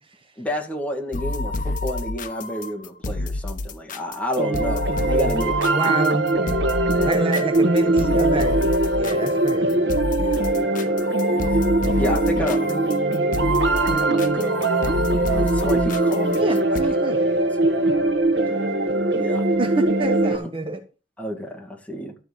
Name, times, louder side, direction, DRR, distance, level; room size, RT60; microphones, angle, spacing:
voice 1, 0.4-5.8 6.9-7.2 10.2-11.2 11.9-12.9 13.7-14.7 15.3-16.5 16.9-18.6 19.1-19.4 21.2-22.1, equal, 10° left, 2.1 m, -31 dB
sound 1, 1.1-16.8, left 2 dB, 45° left, 1.0 m, -29 dB
sound 2, 4.4-20.4, right 2 dB, 75° right, 1.3 m, -21 dB
voice 2, 5.7-6.3 7.0-9.9 16.3-17.2 19.6-20.8, right 2 dB, 30° right, 1.1 m, -27 dB
12.5 x 4.5 x 7.2 m
head